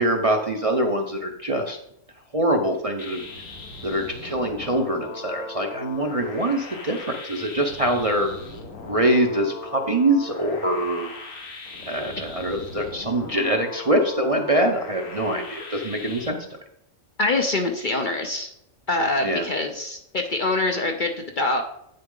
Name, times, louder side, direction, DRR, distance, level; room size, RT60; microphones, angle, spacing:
voice 1, 0.0-1.8 2.3-3.2 3.8-8.3 8.8-11.1 11.9-16.5 19.2-19.5, right 1 dB, 35° right, 2 dB, 0.7 m, -24 dB
sound 1, 3.0-16.3, left 3 dB, 75° left, 1.7 m, -39 dB
voice 2, 17.2-18.5 18.9-21.6, left 2 dB, 45° left, 4 dB, 0.8 m, -24 dB
9.1 x 6.6 x 3.8 m, 0.76 s
omnidirectional pair, 1.4 m